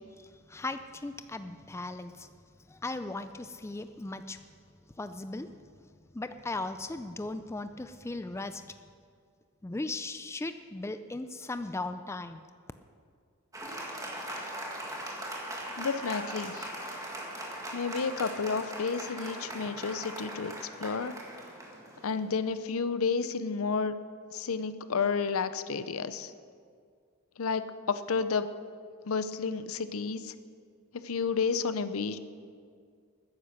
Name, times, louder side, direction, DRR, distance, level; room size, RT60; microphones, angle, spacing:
voice 1, 0.2-2.3 2.7-4.4 5.0-5.5 6.1-8.6 9.6-12.4, left 2 dB, 10° left, 10 dB, 0.4 m, -37 dB
Applause, 13.5-22.5, right 1 dB, 15° right, 1.8 m, -40 dB
voice 2, 15.8-16.7 17.7-21.1 22.0-23.9 24.3-26.3 27.4-28.5 29.1-30.3 31.0-32.2, left 5 dB, 70° left, 12 dB, 0.6 m, -31 dB
13.0 x 10.0 x 6.5 m, 2.1 s
head